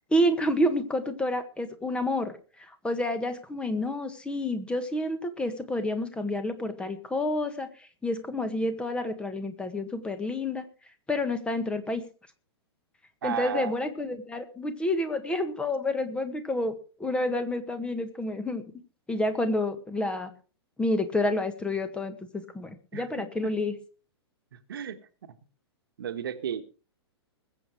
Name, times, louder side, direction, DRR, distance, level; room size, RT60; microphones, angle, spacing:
voice 1, 0.1-10.6 11.1-12.0 13.2-18.6 19.1-20.3 20.8-23.7, left 1 dB, 5° left, 10 dB, 1.6 m, -29 dB
voice 2, 13.2-13.7 22.9-23.1 23.4-23.5 24.5-25.0 25.2-25.3 26.0-26.6, right 9 dB, 55° right, 9 dB, 1.6 m, -33 dB
21.0 x 8.3 x 4.8 m, 0.37 s
figure-of-eight pair, 105°, 14 cm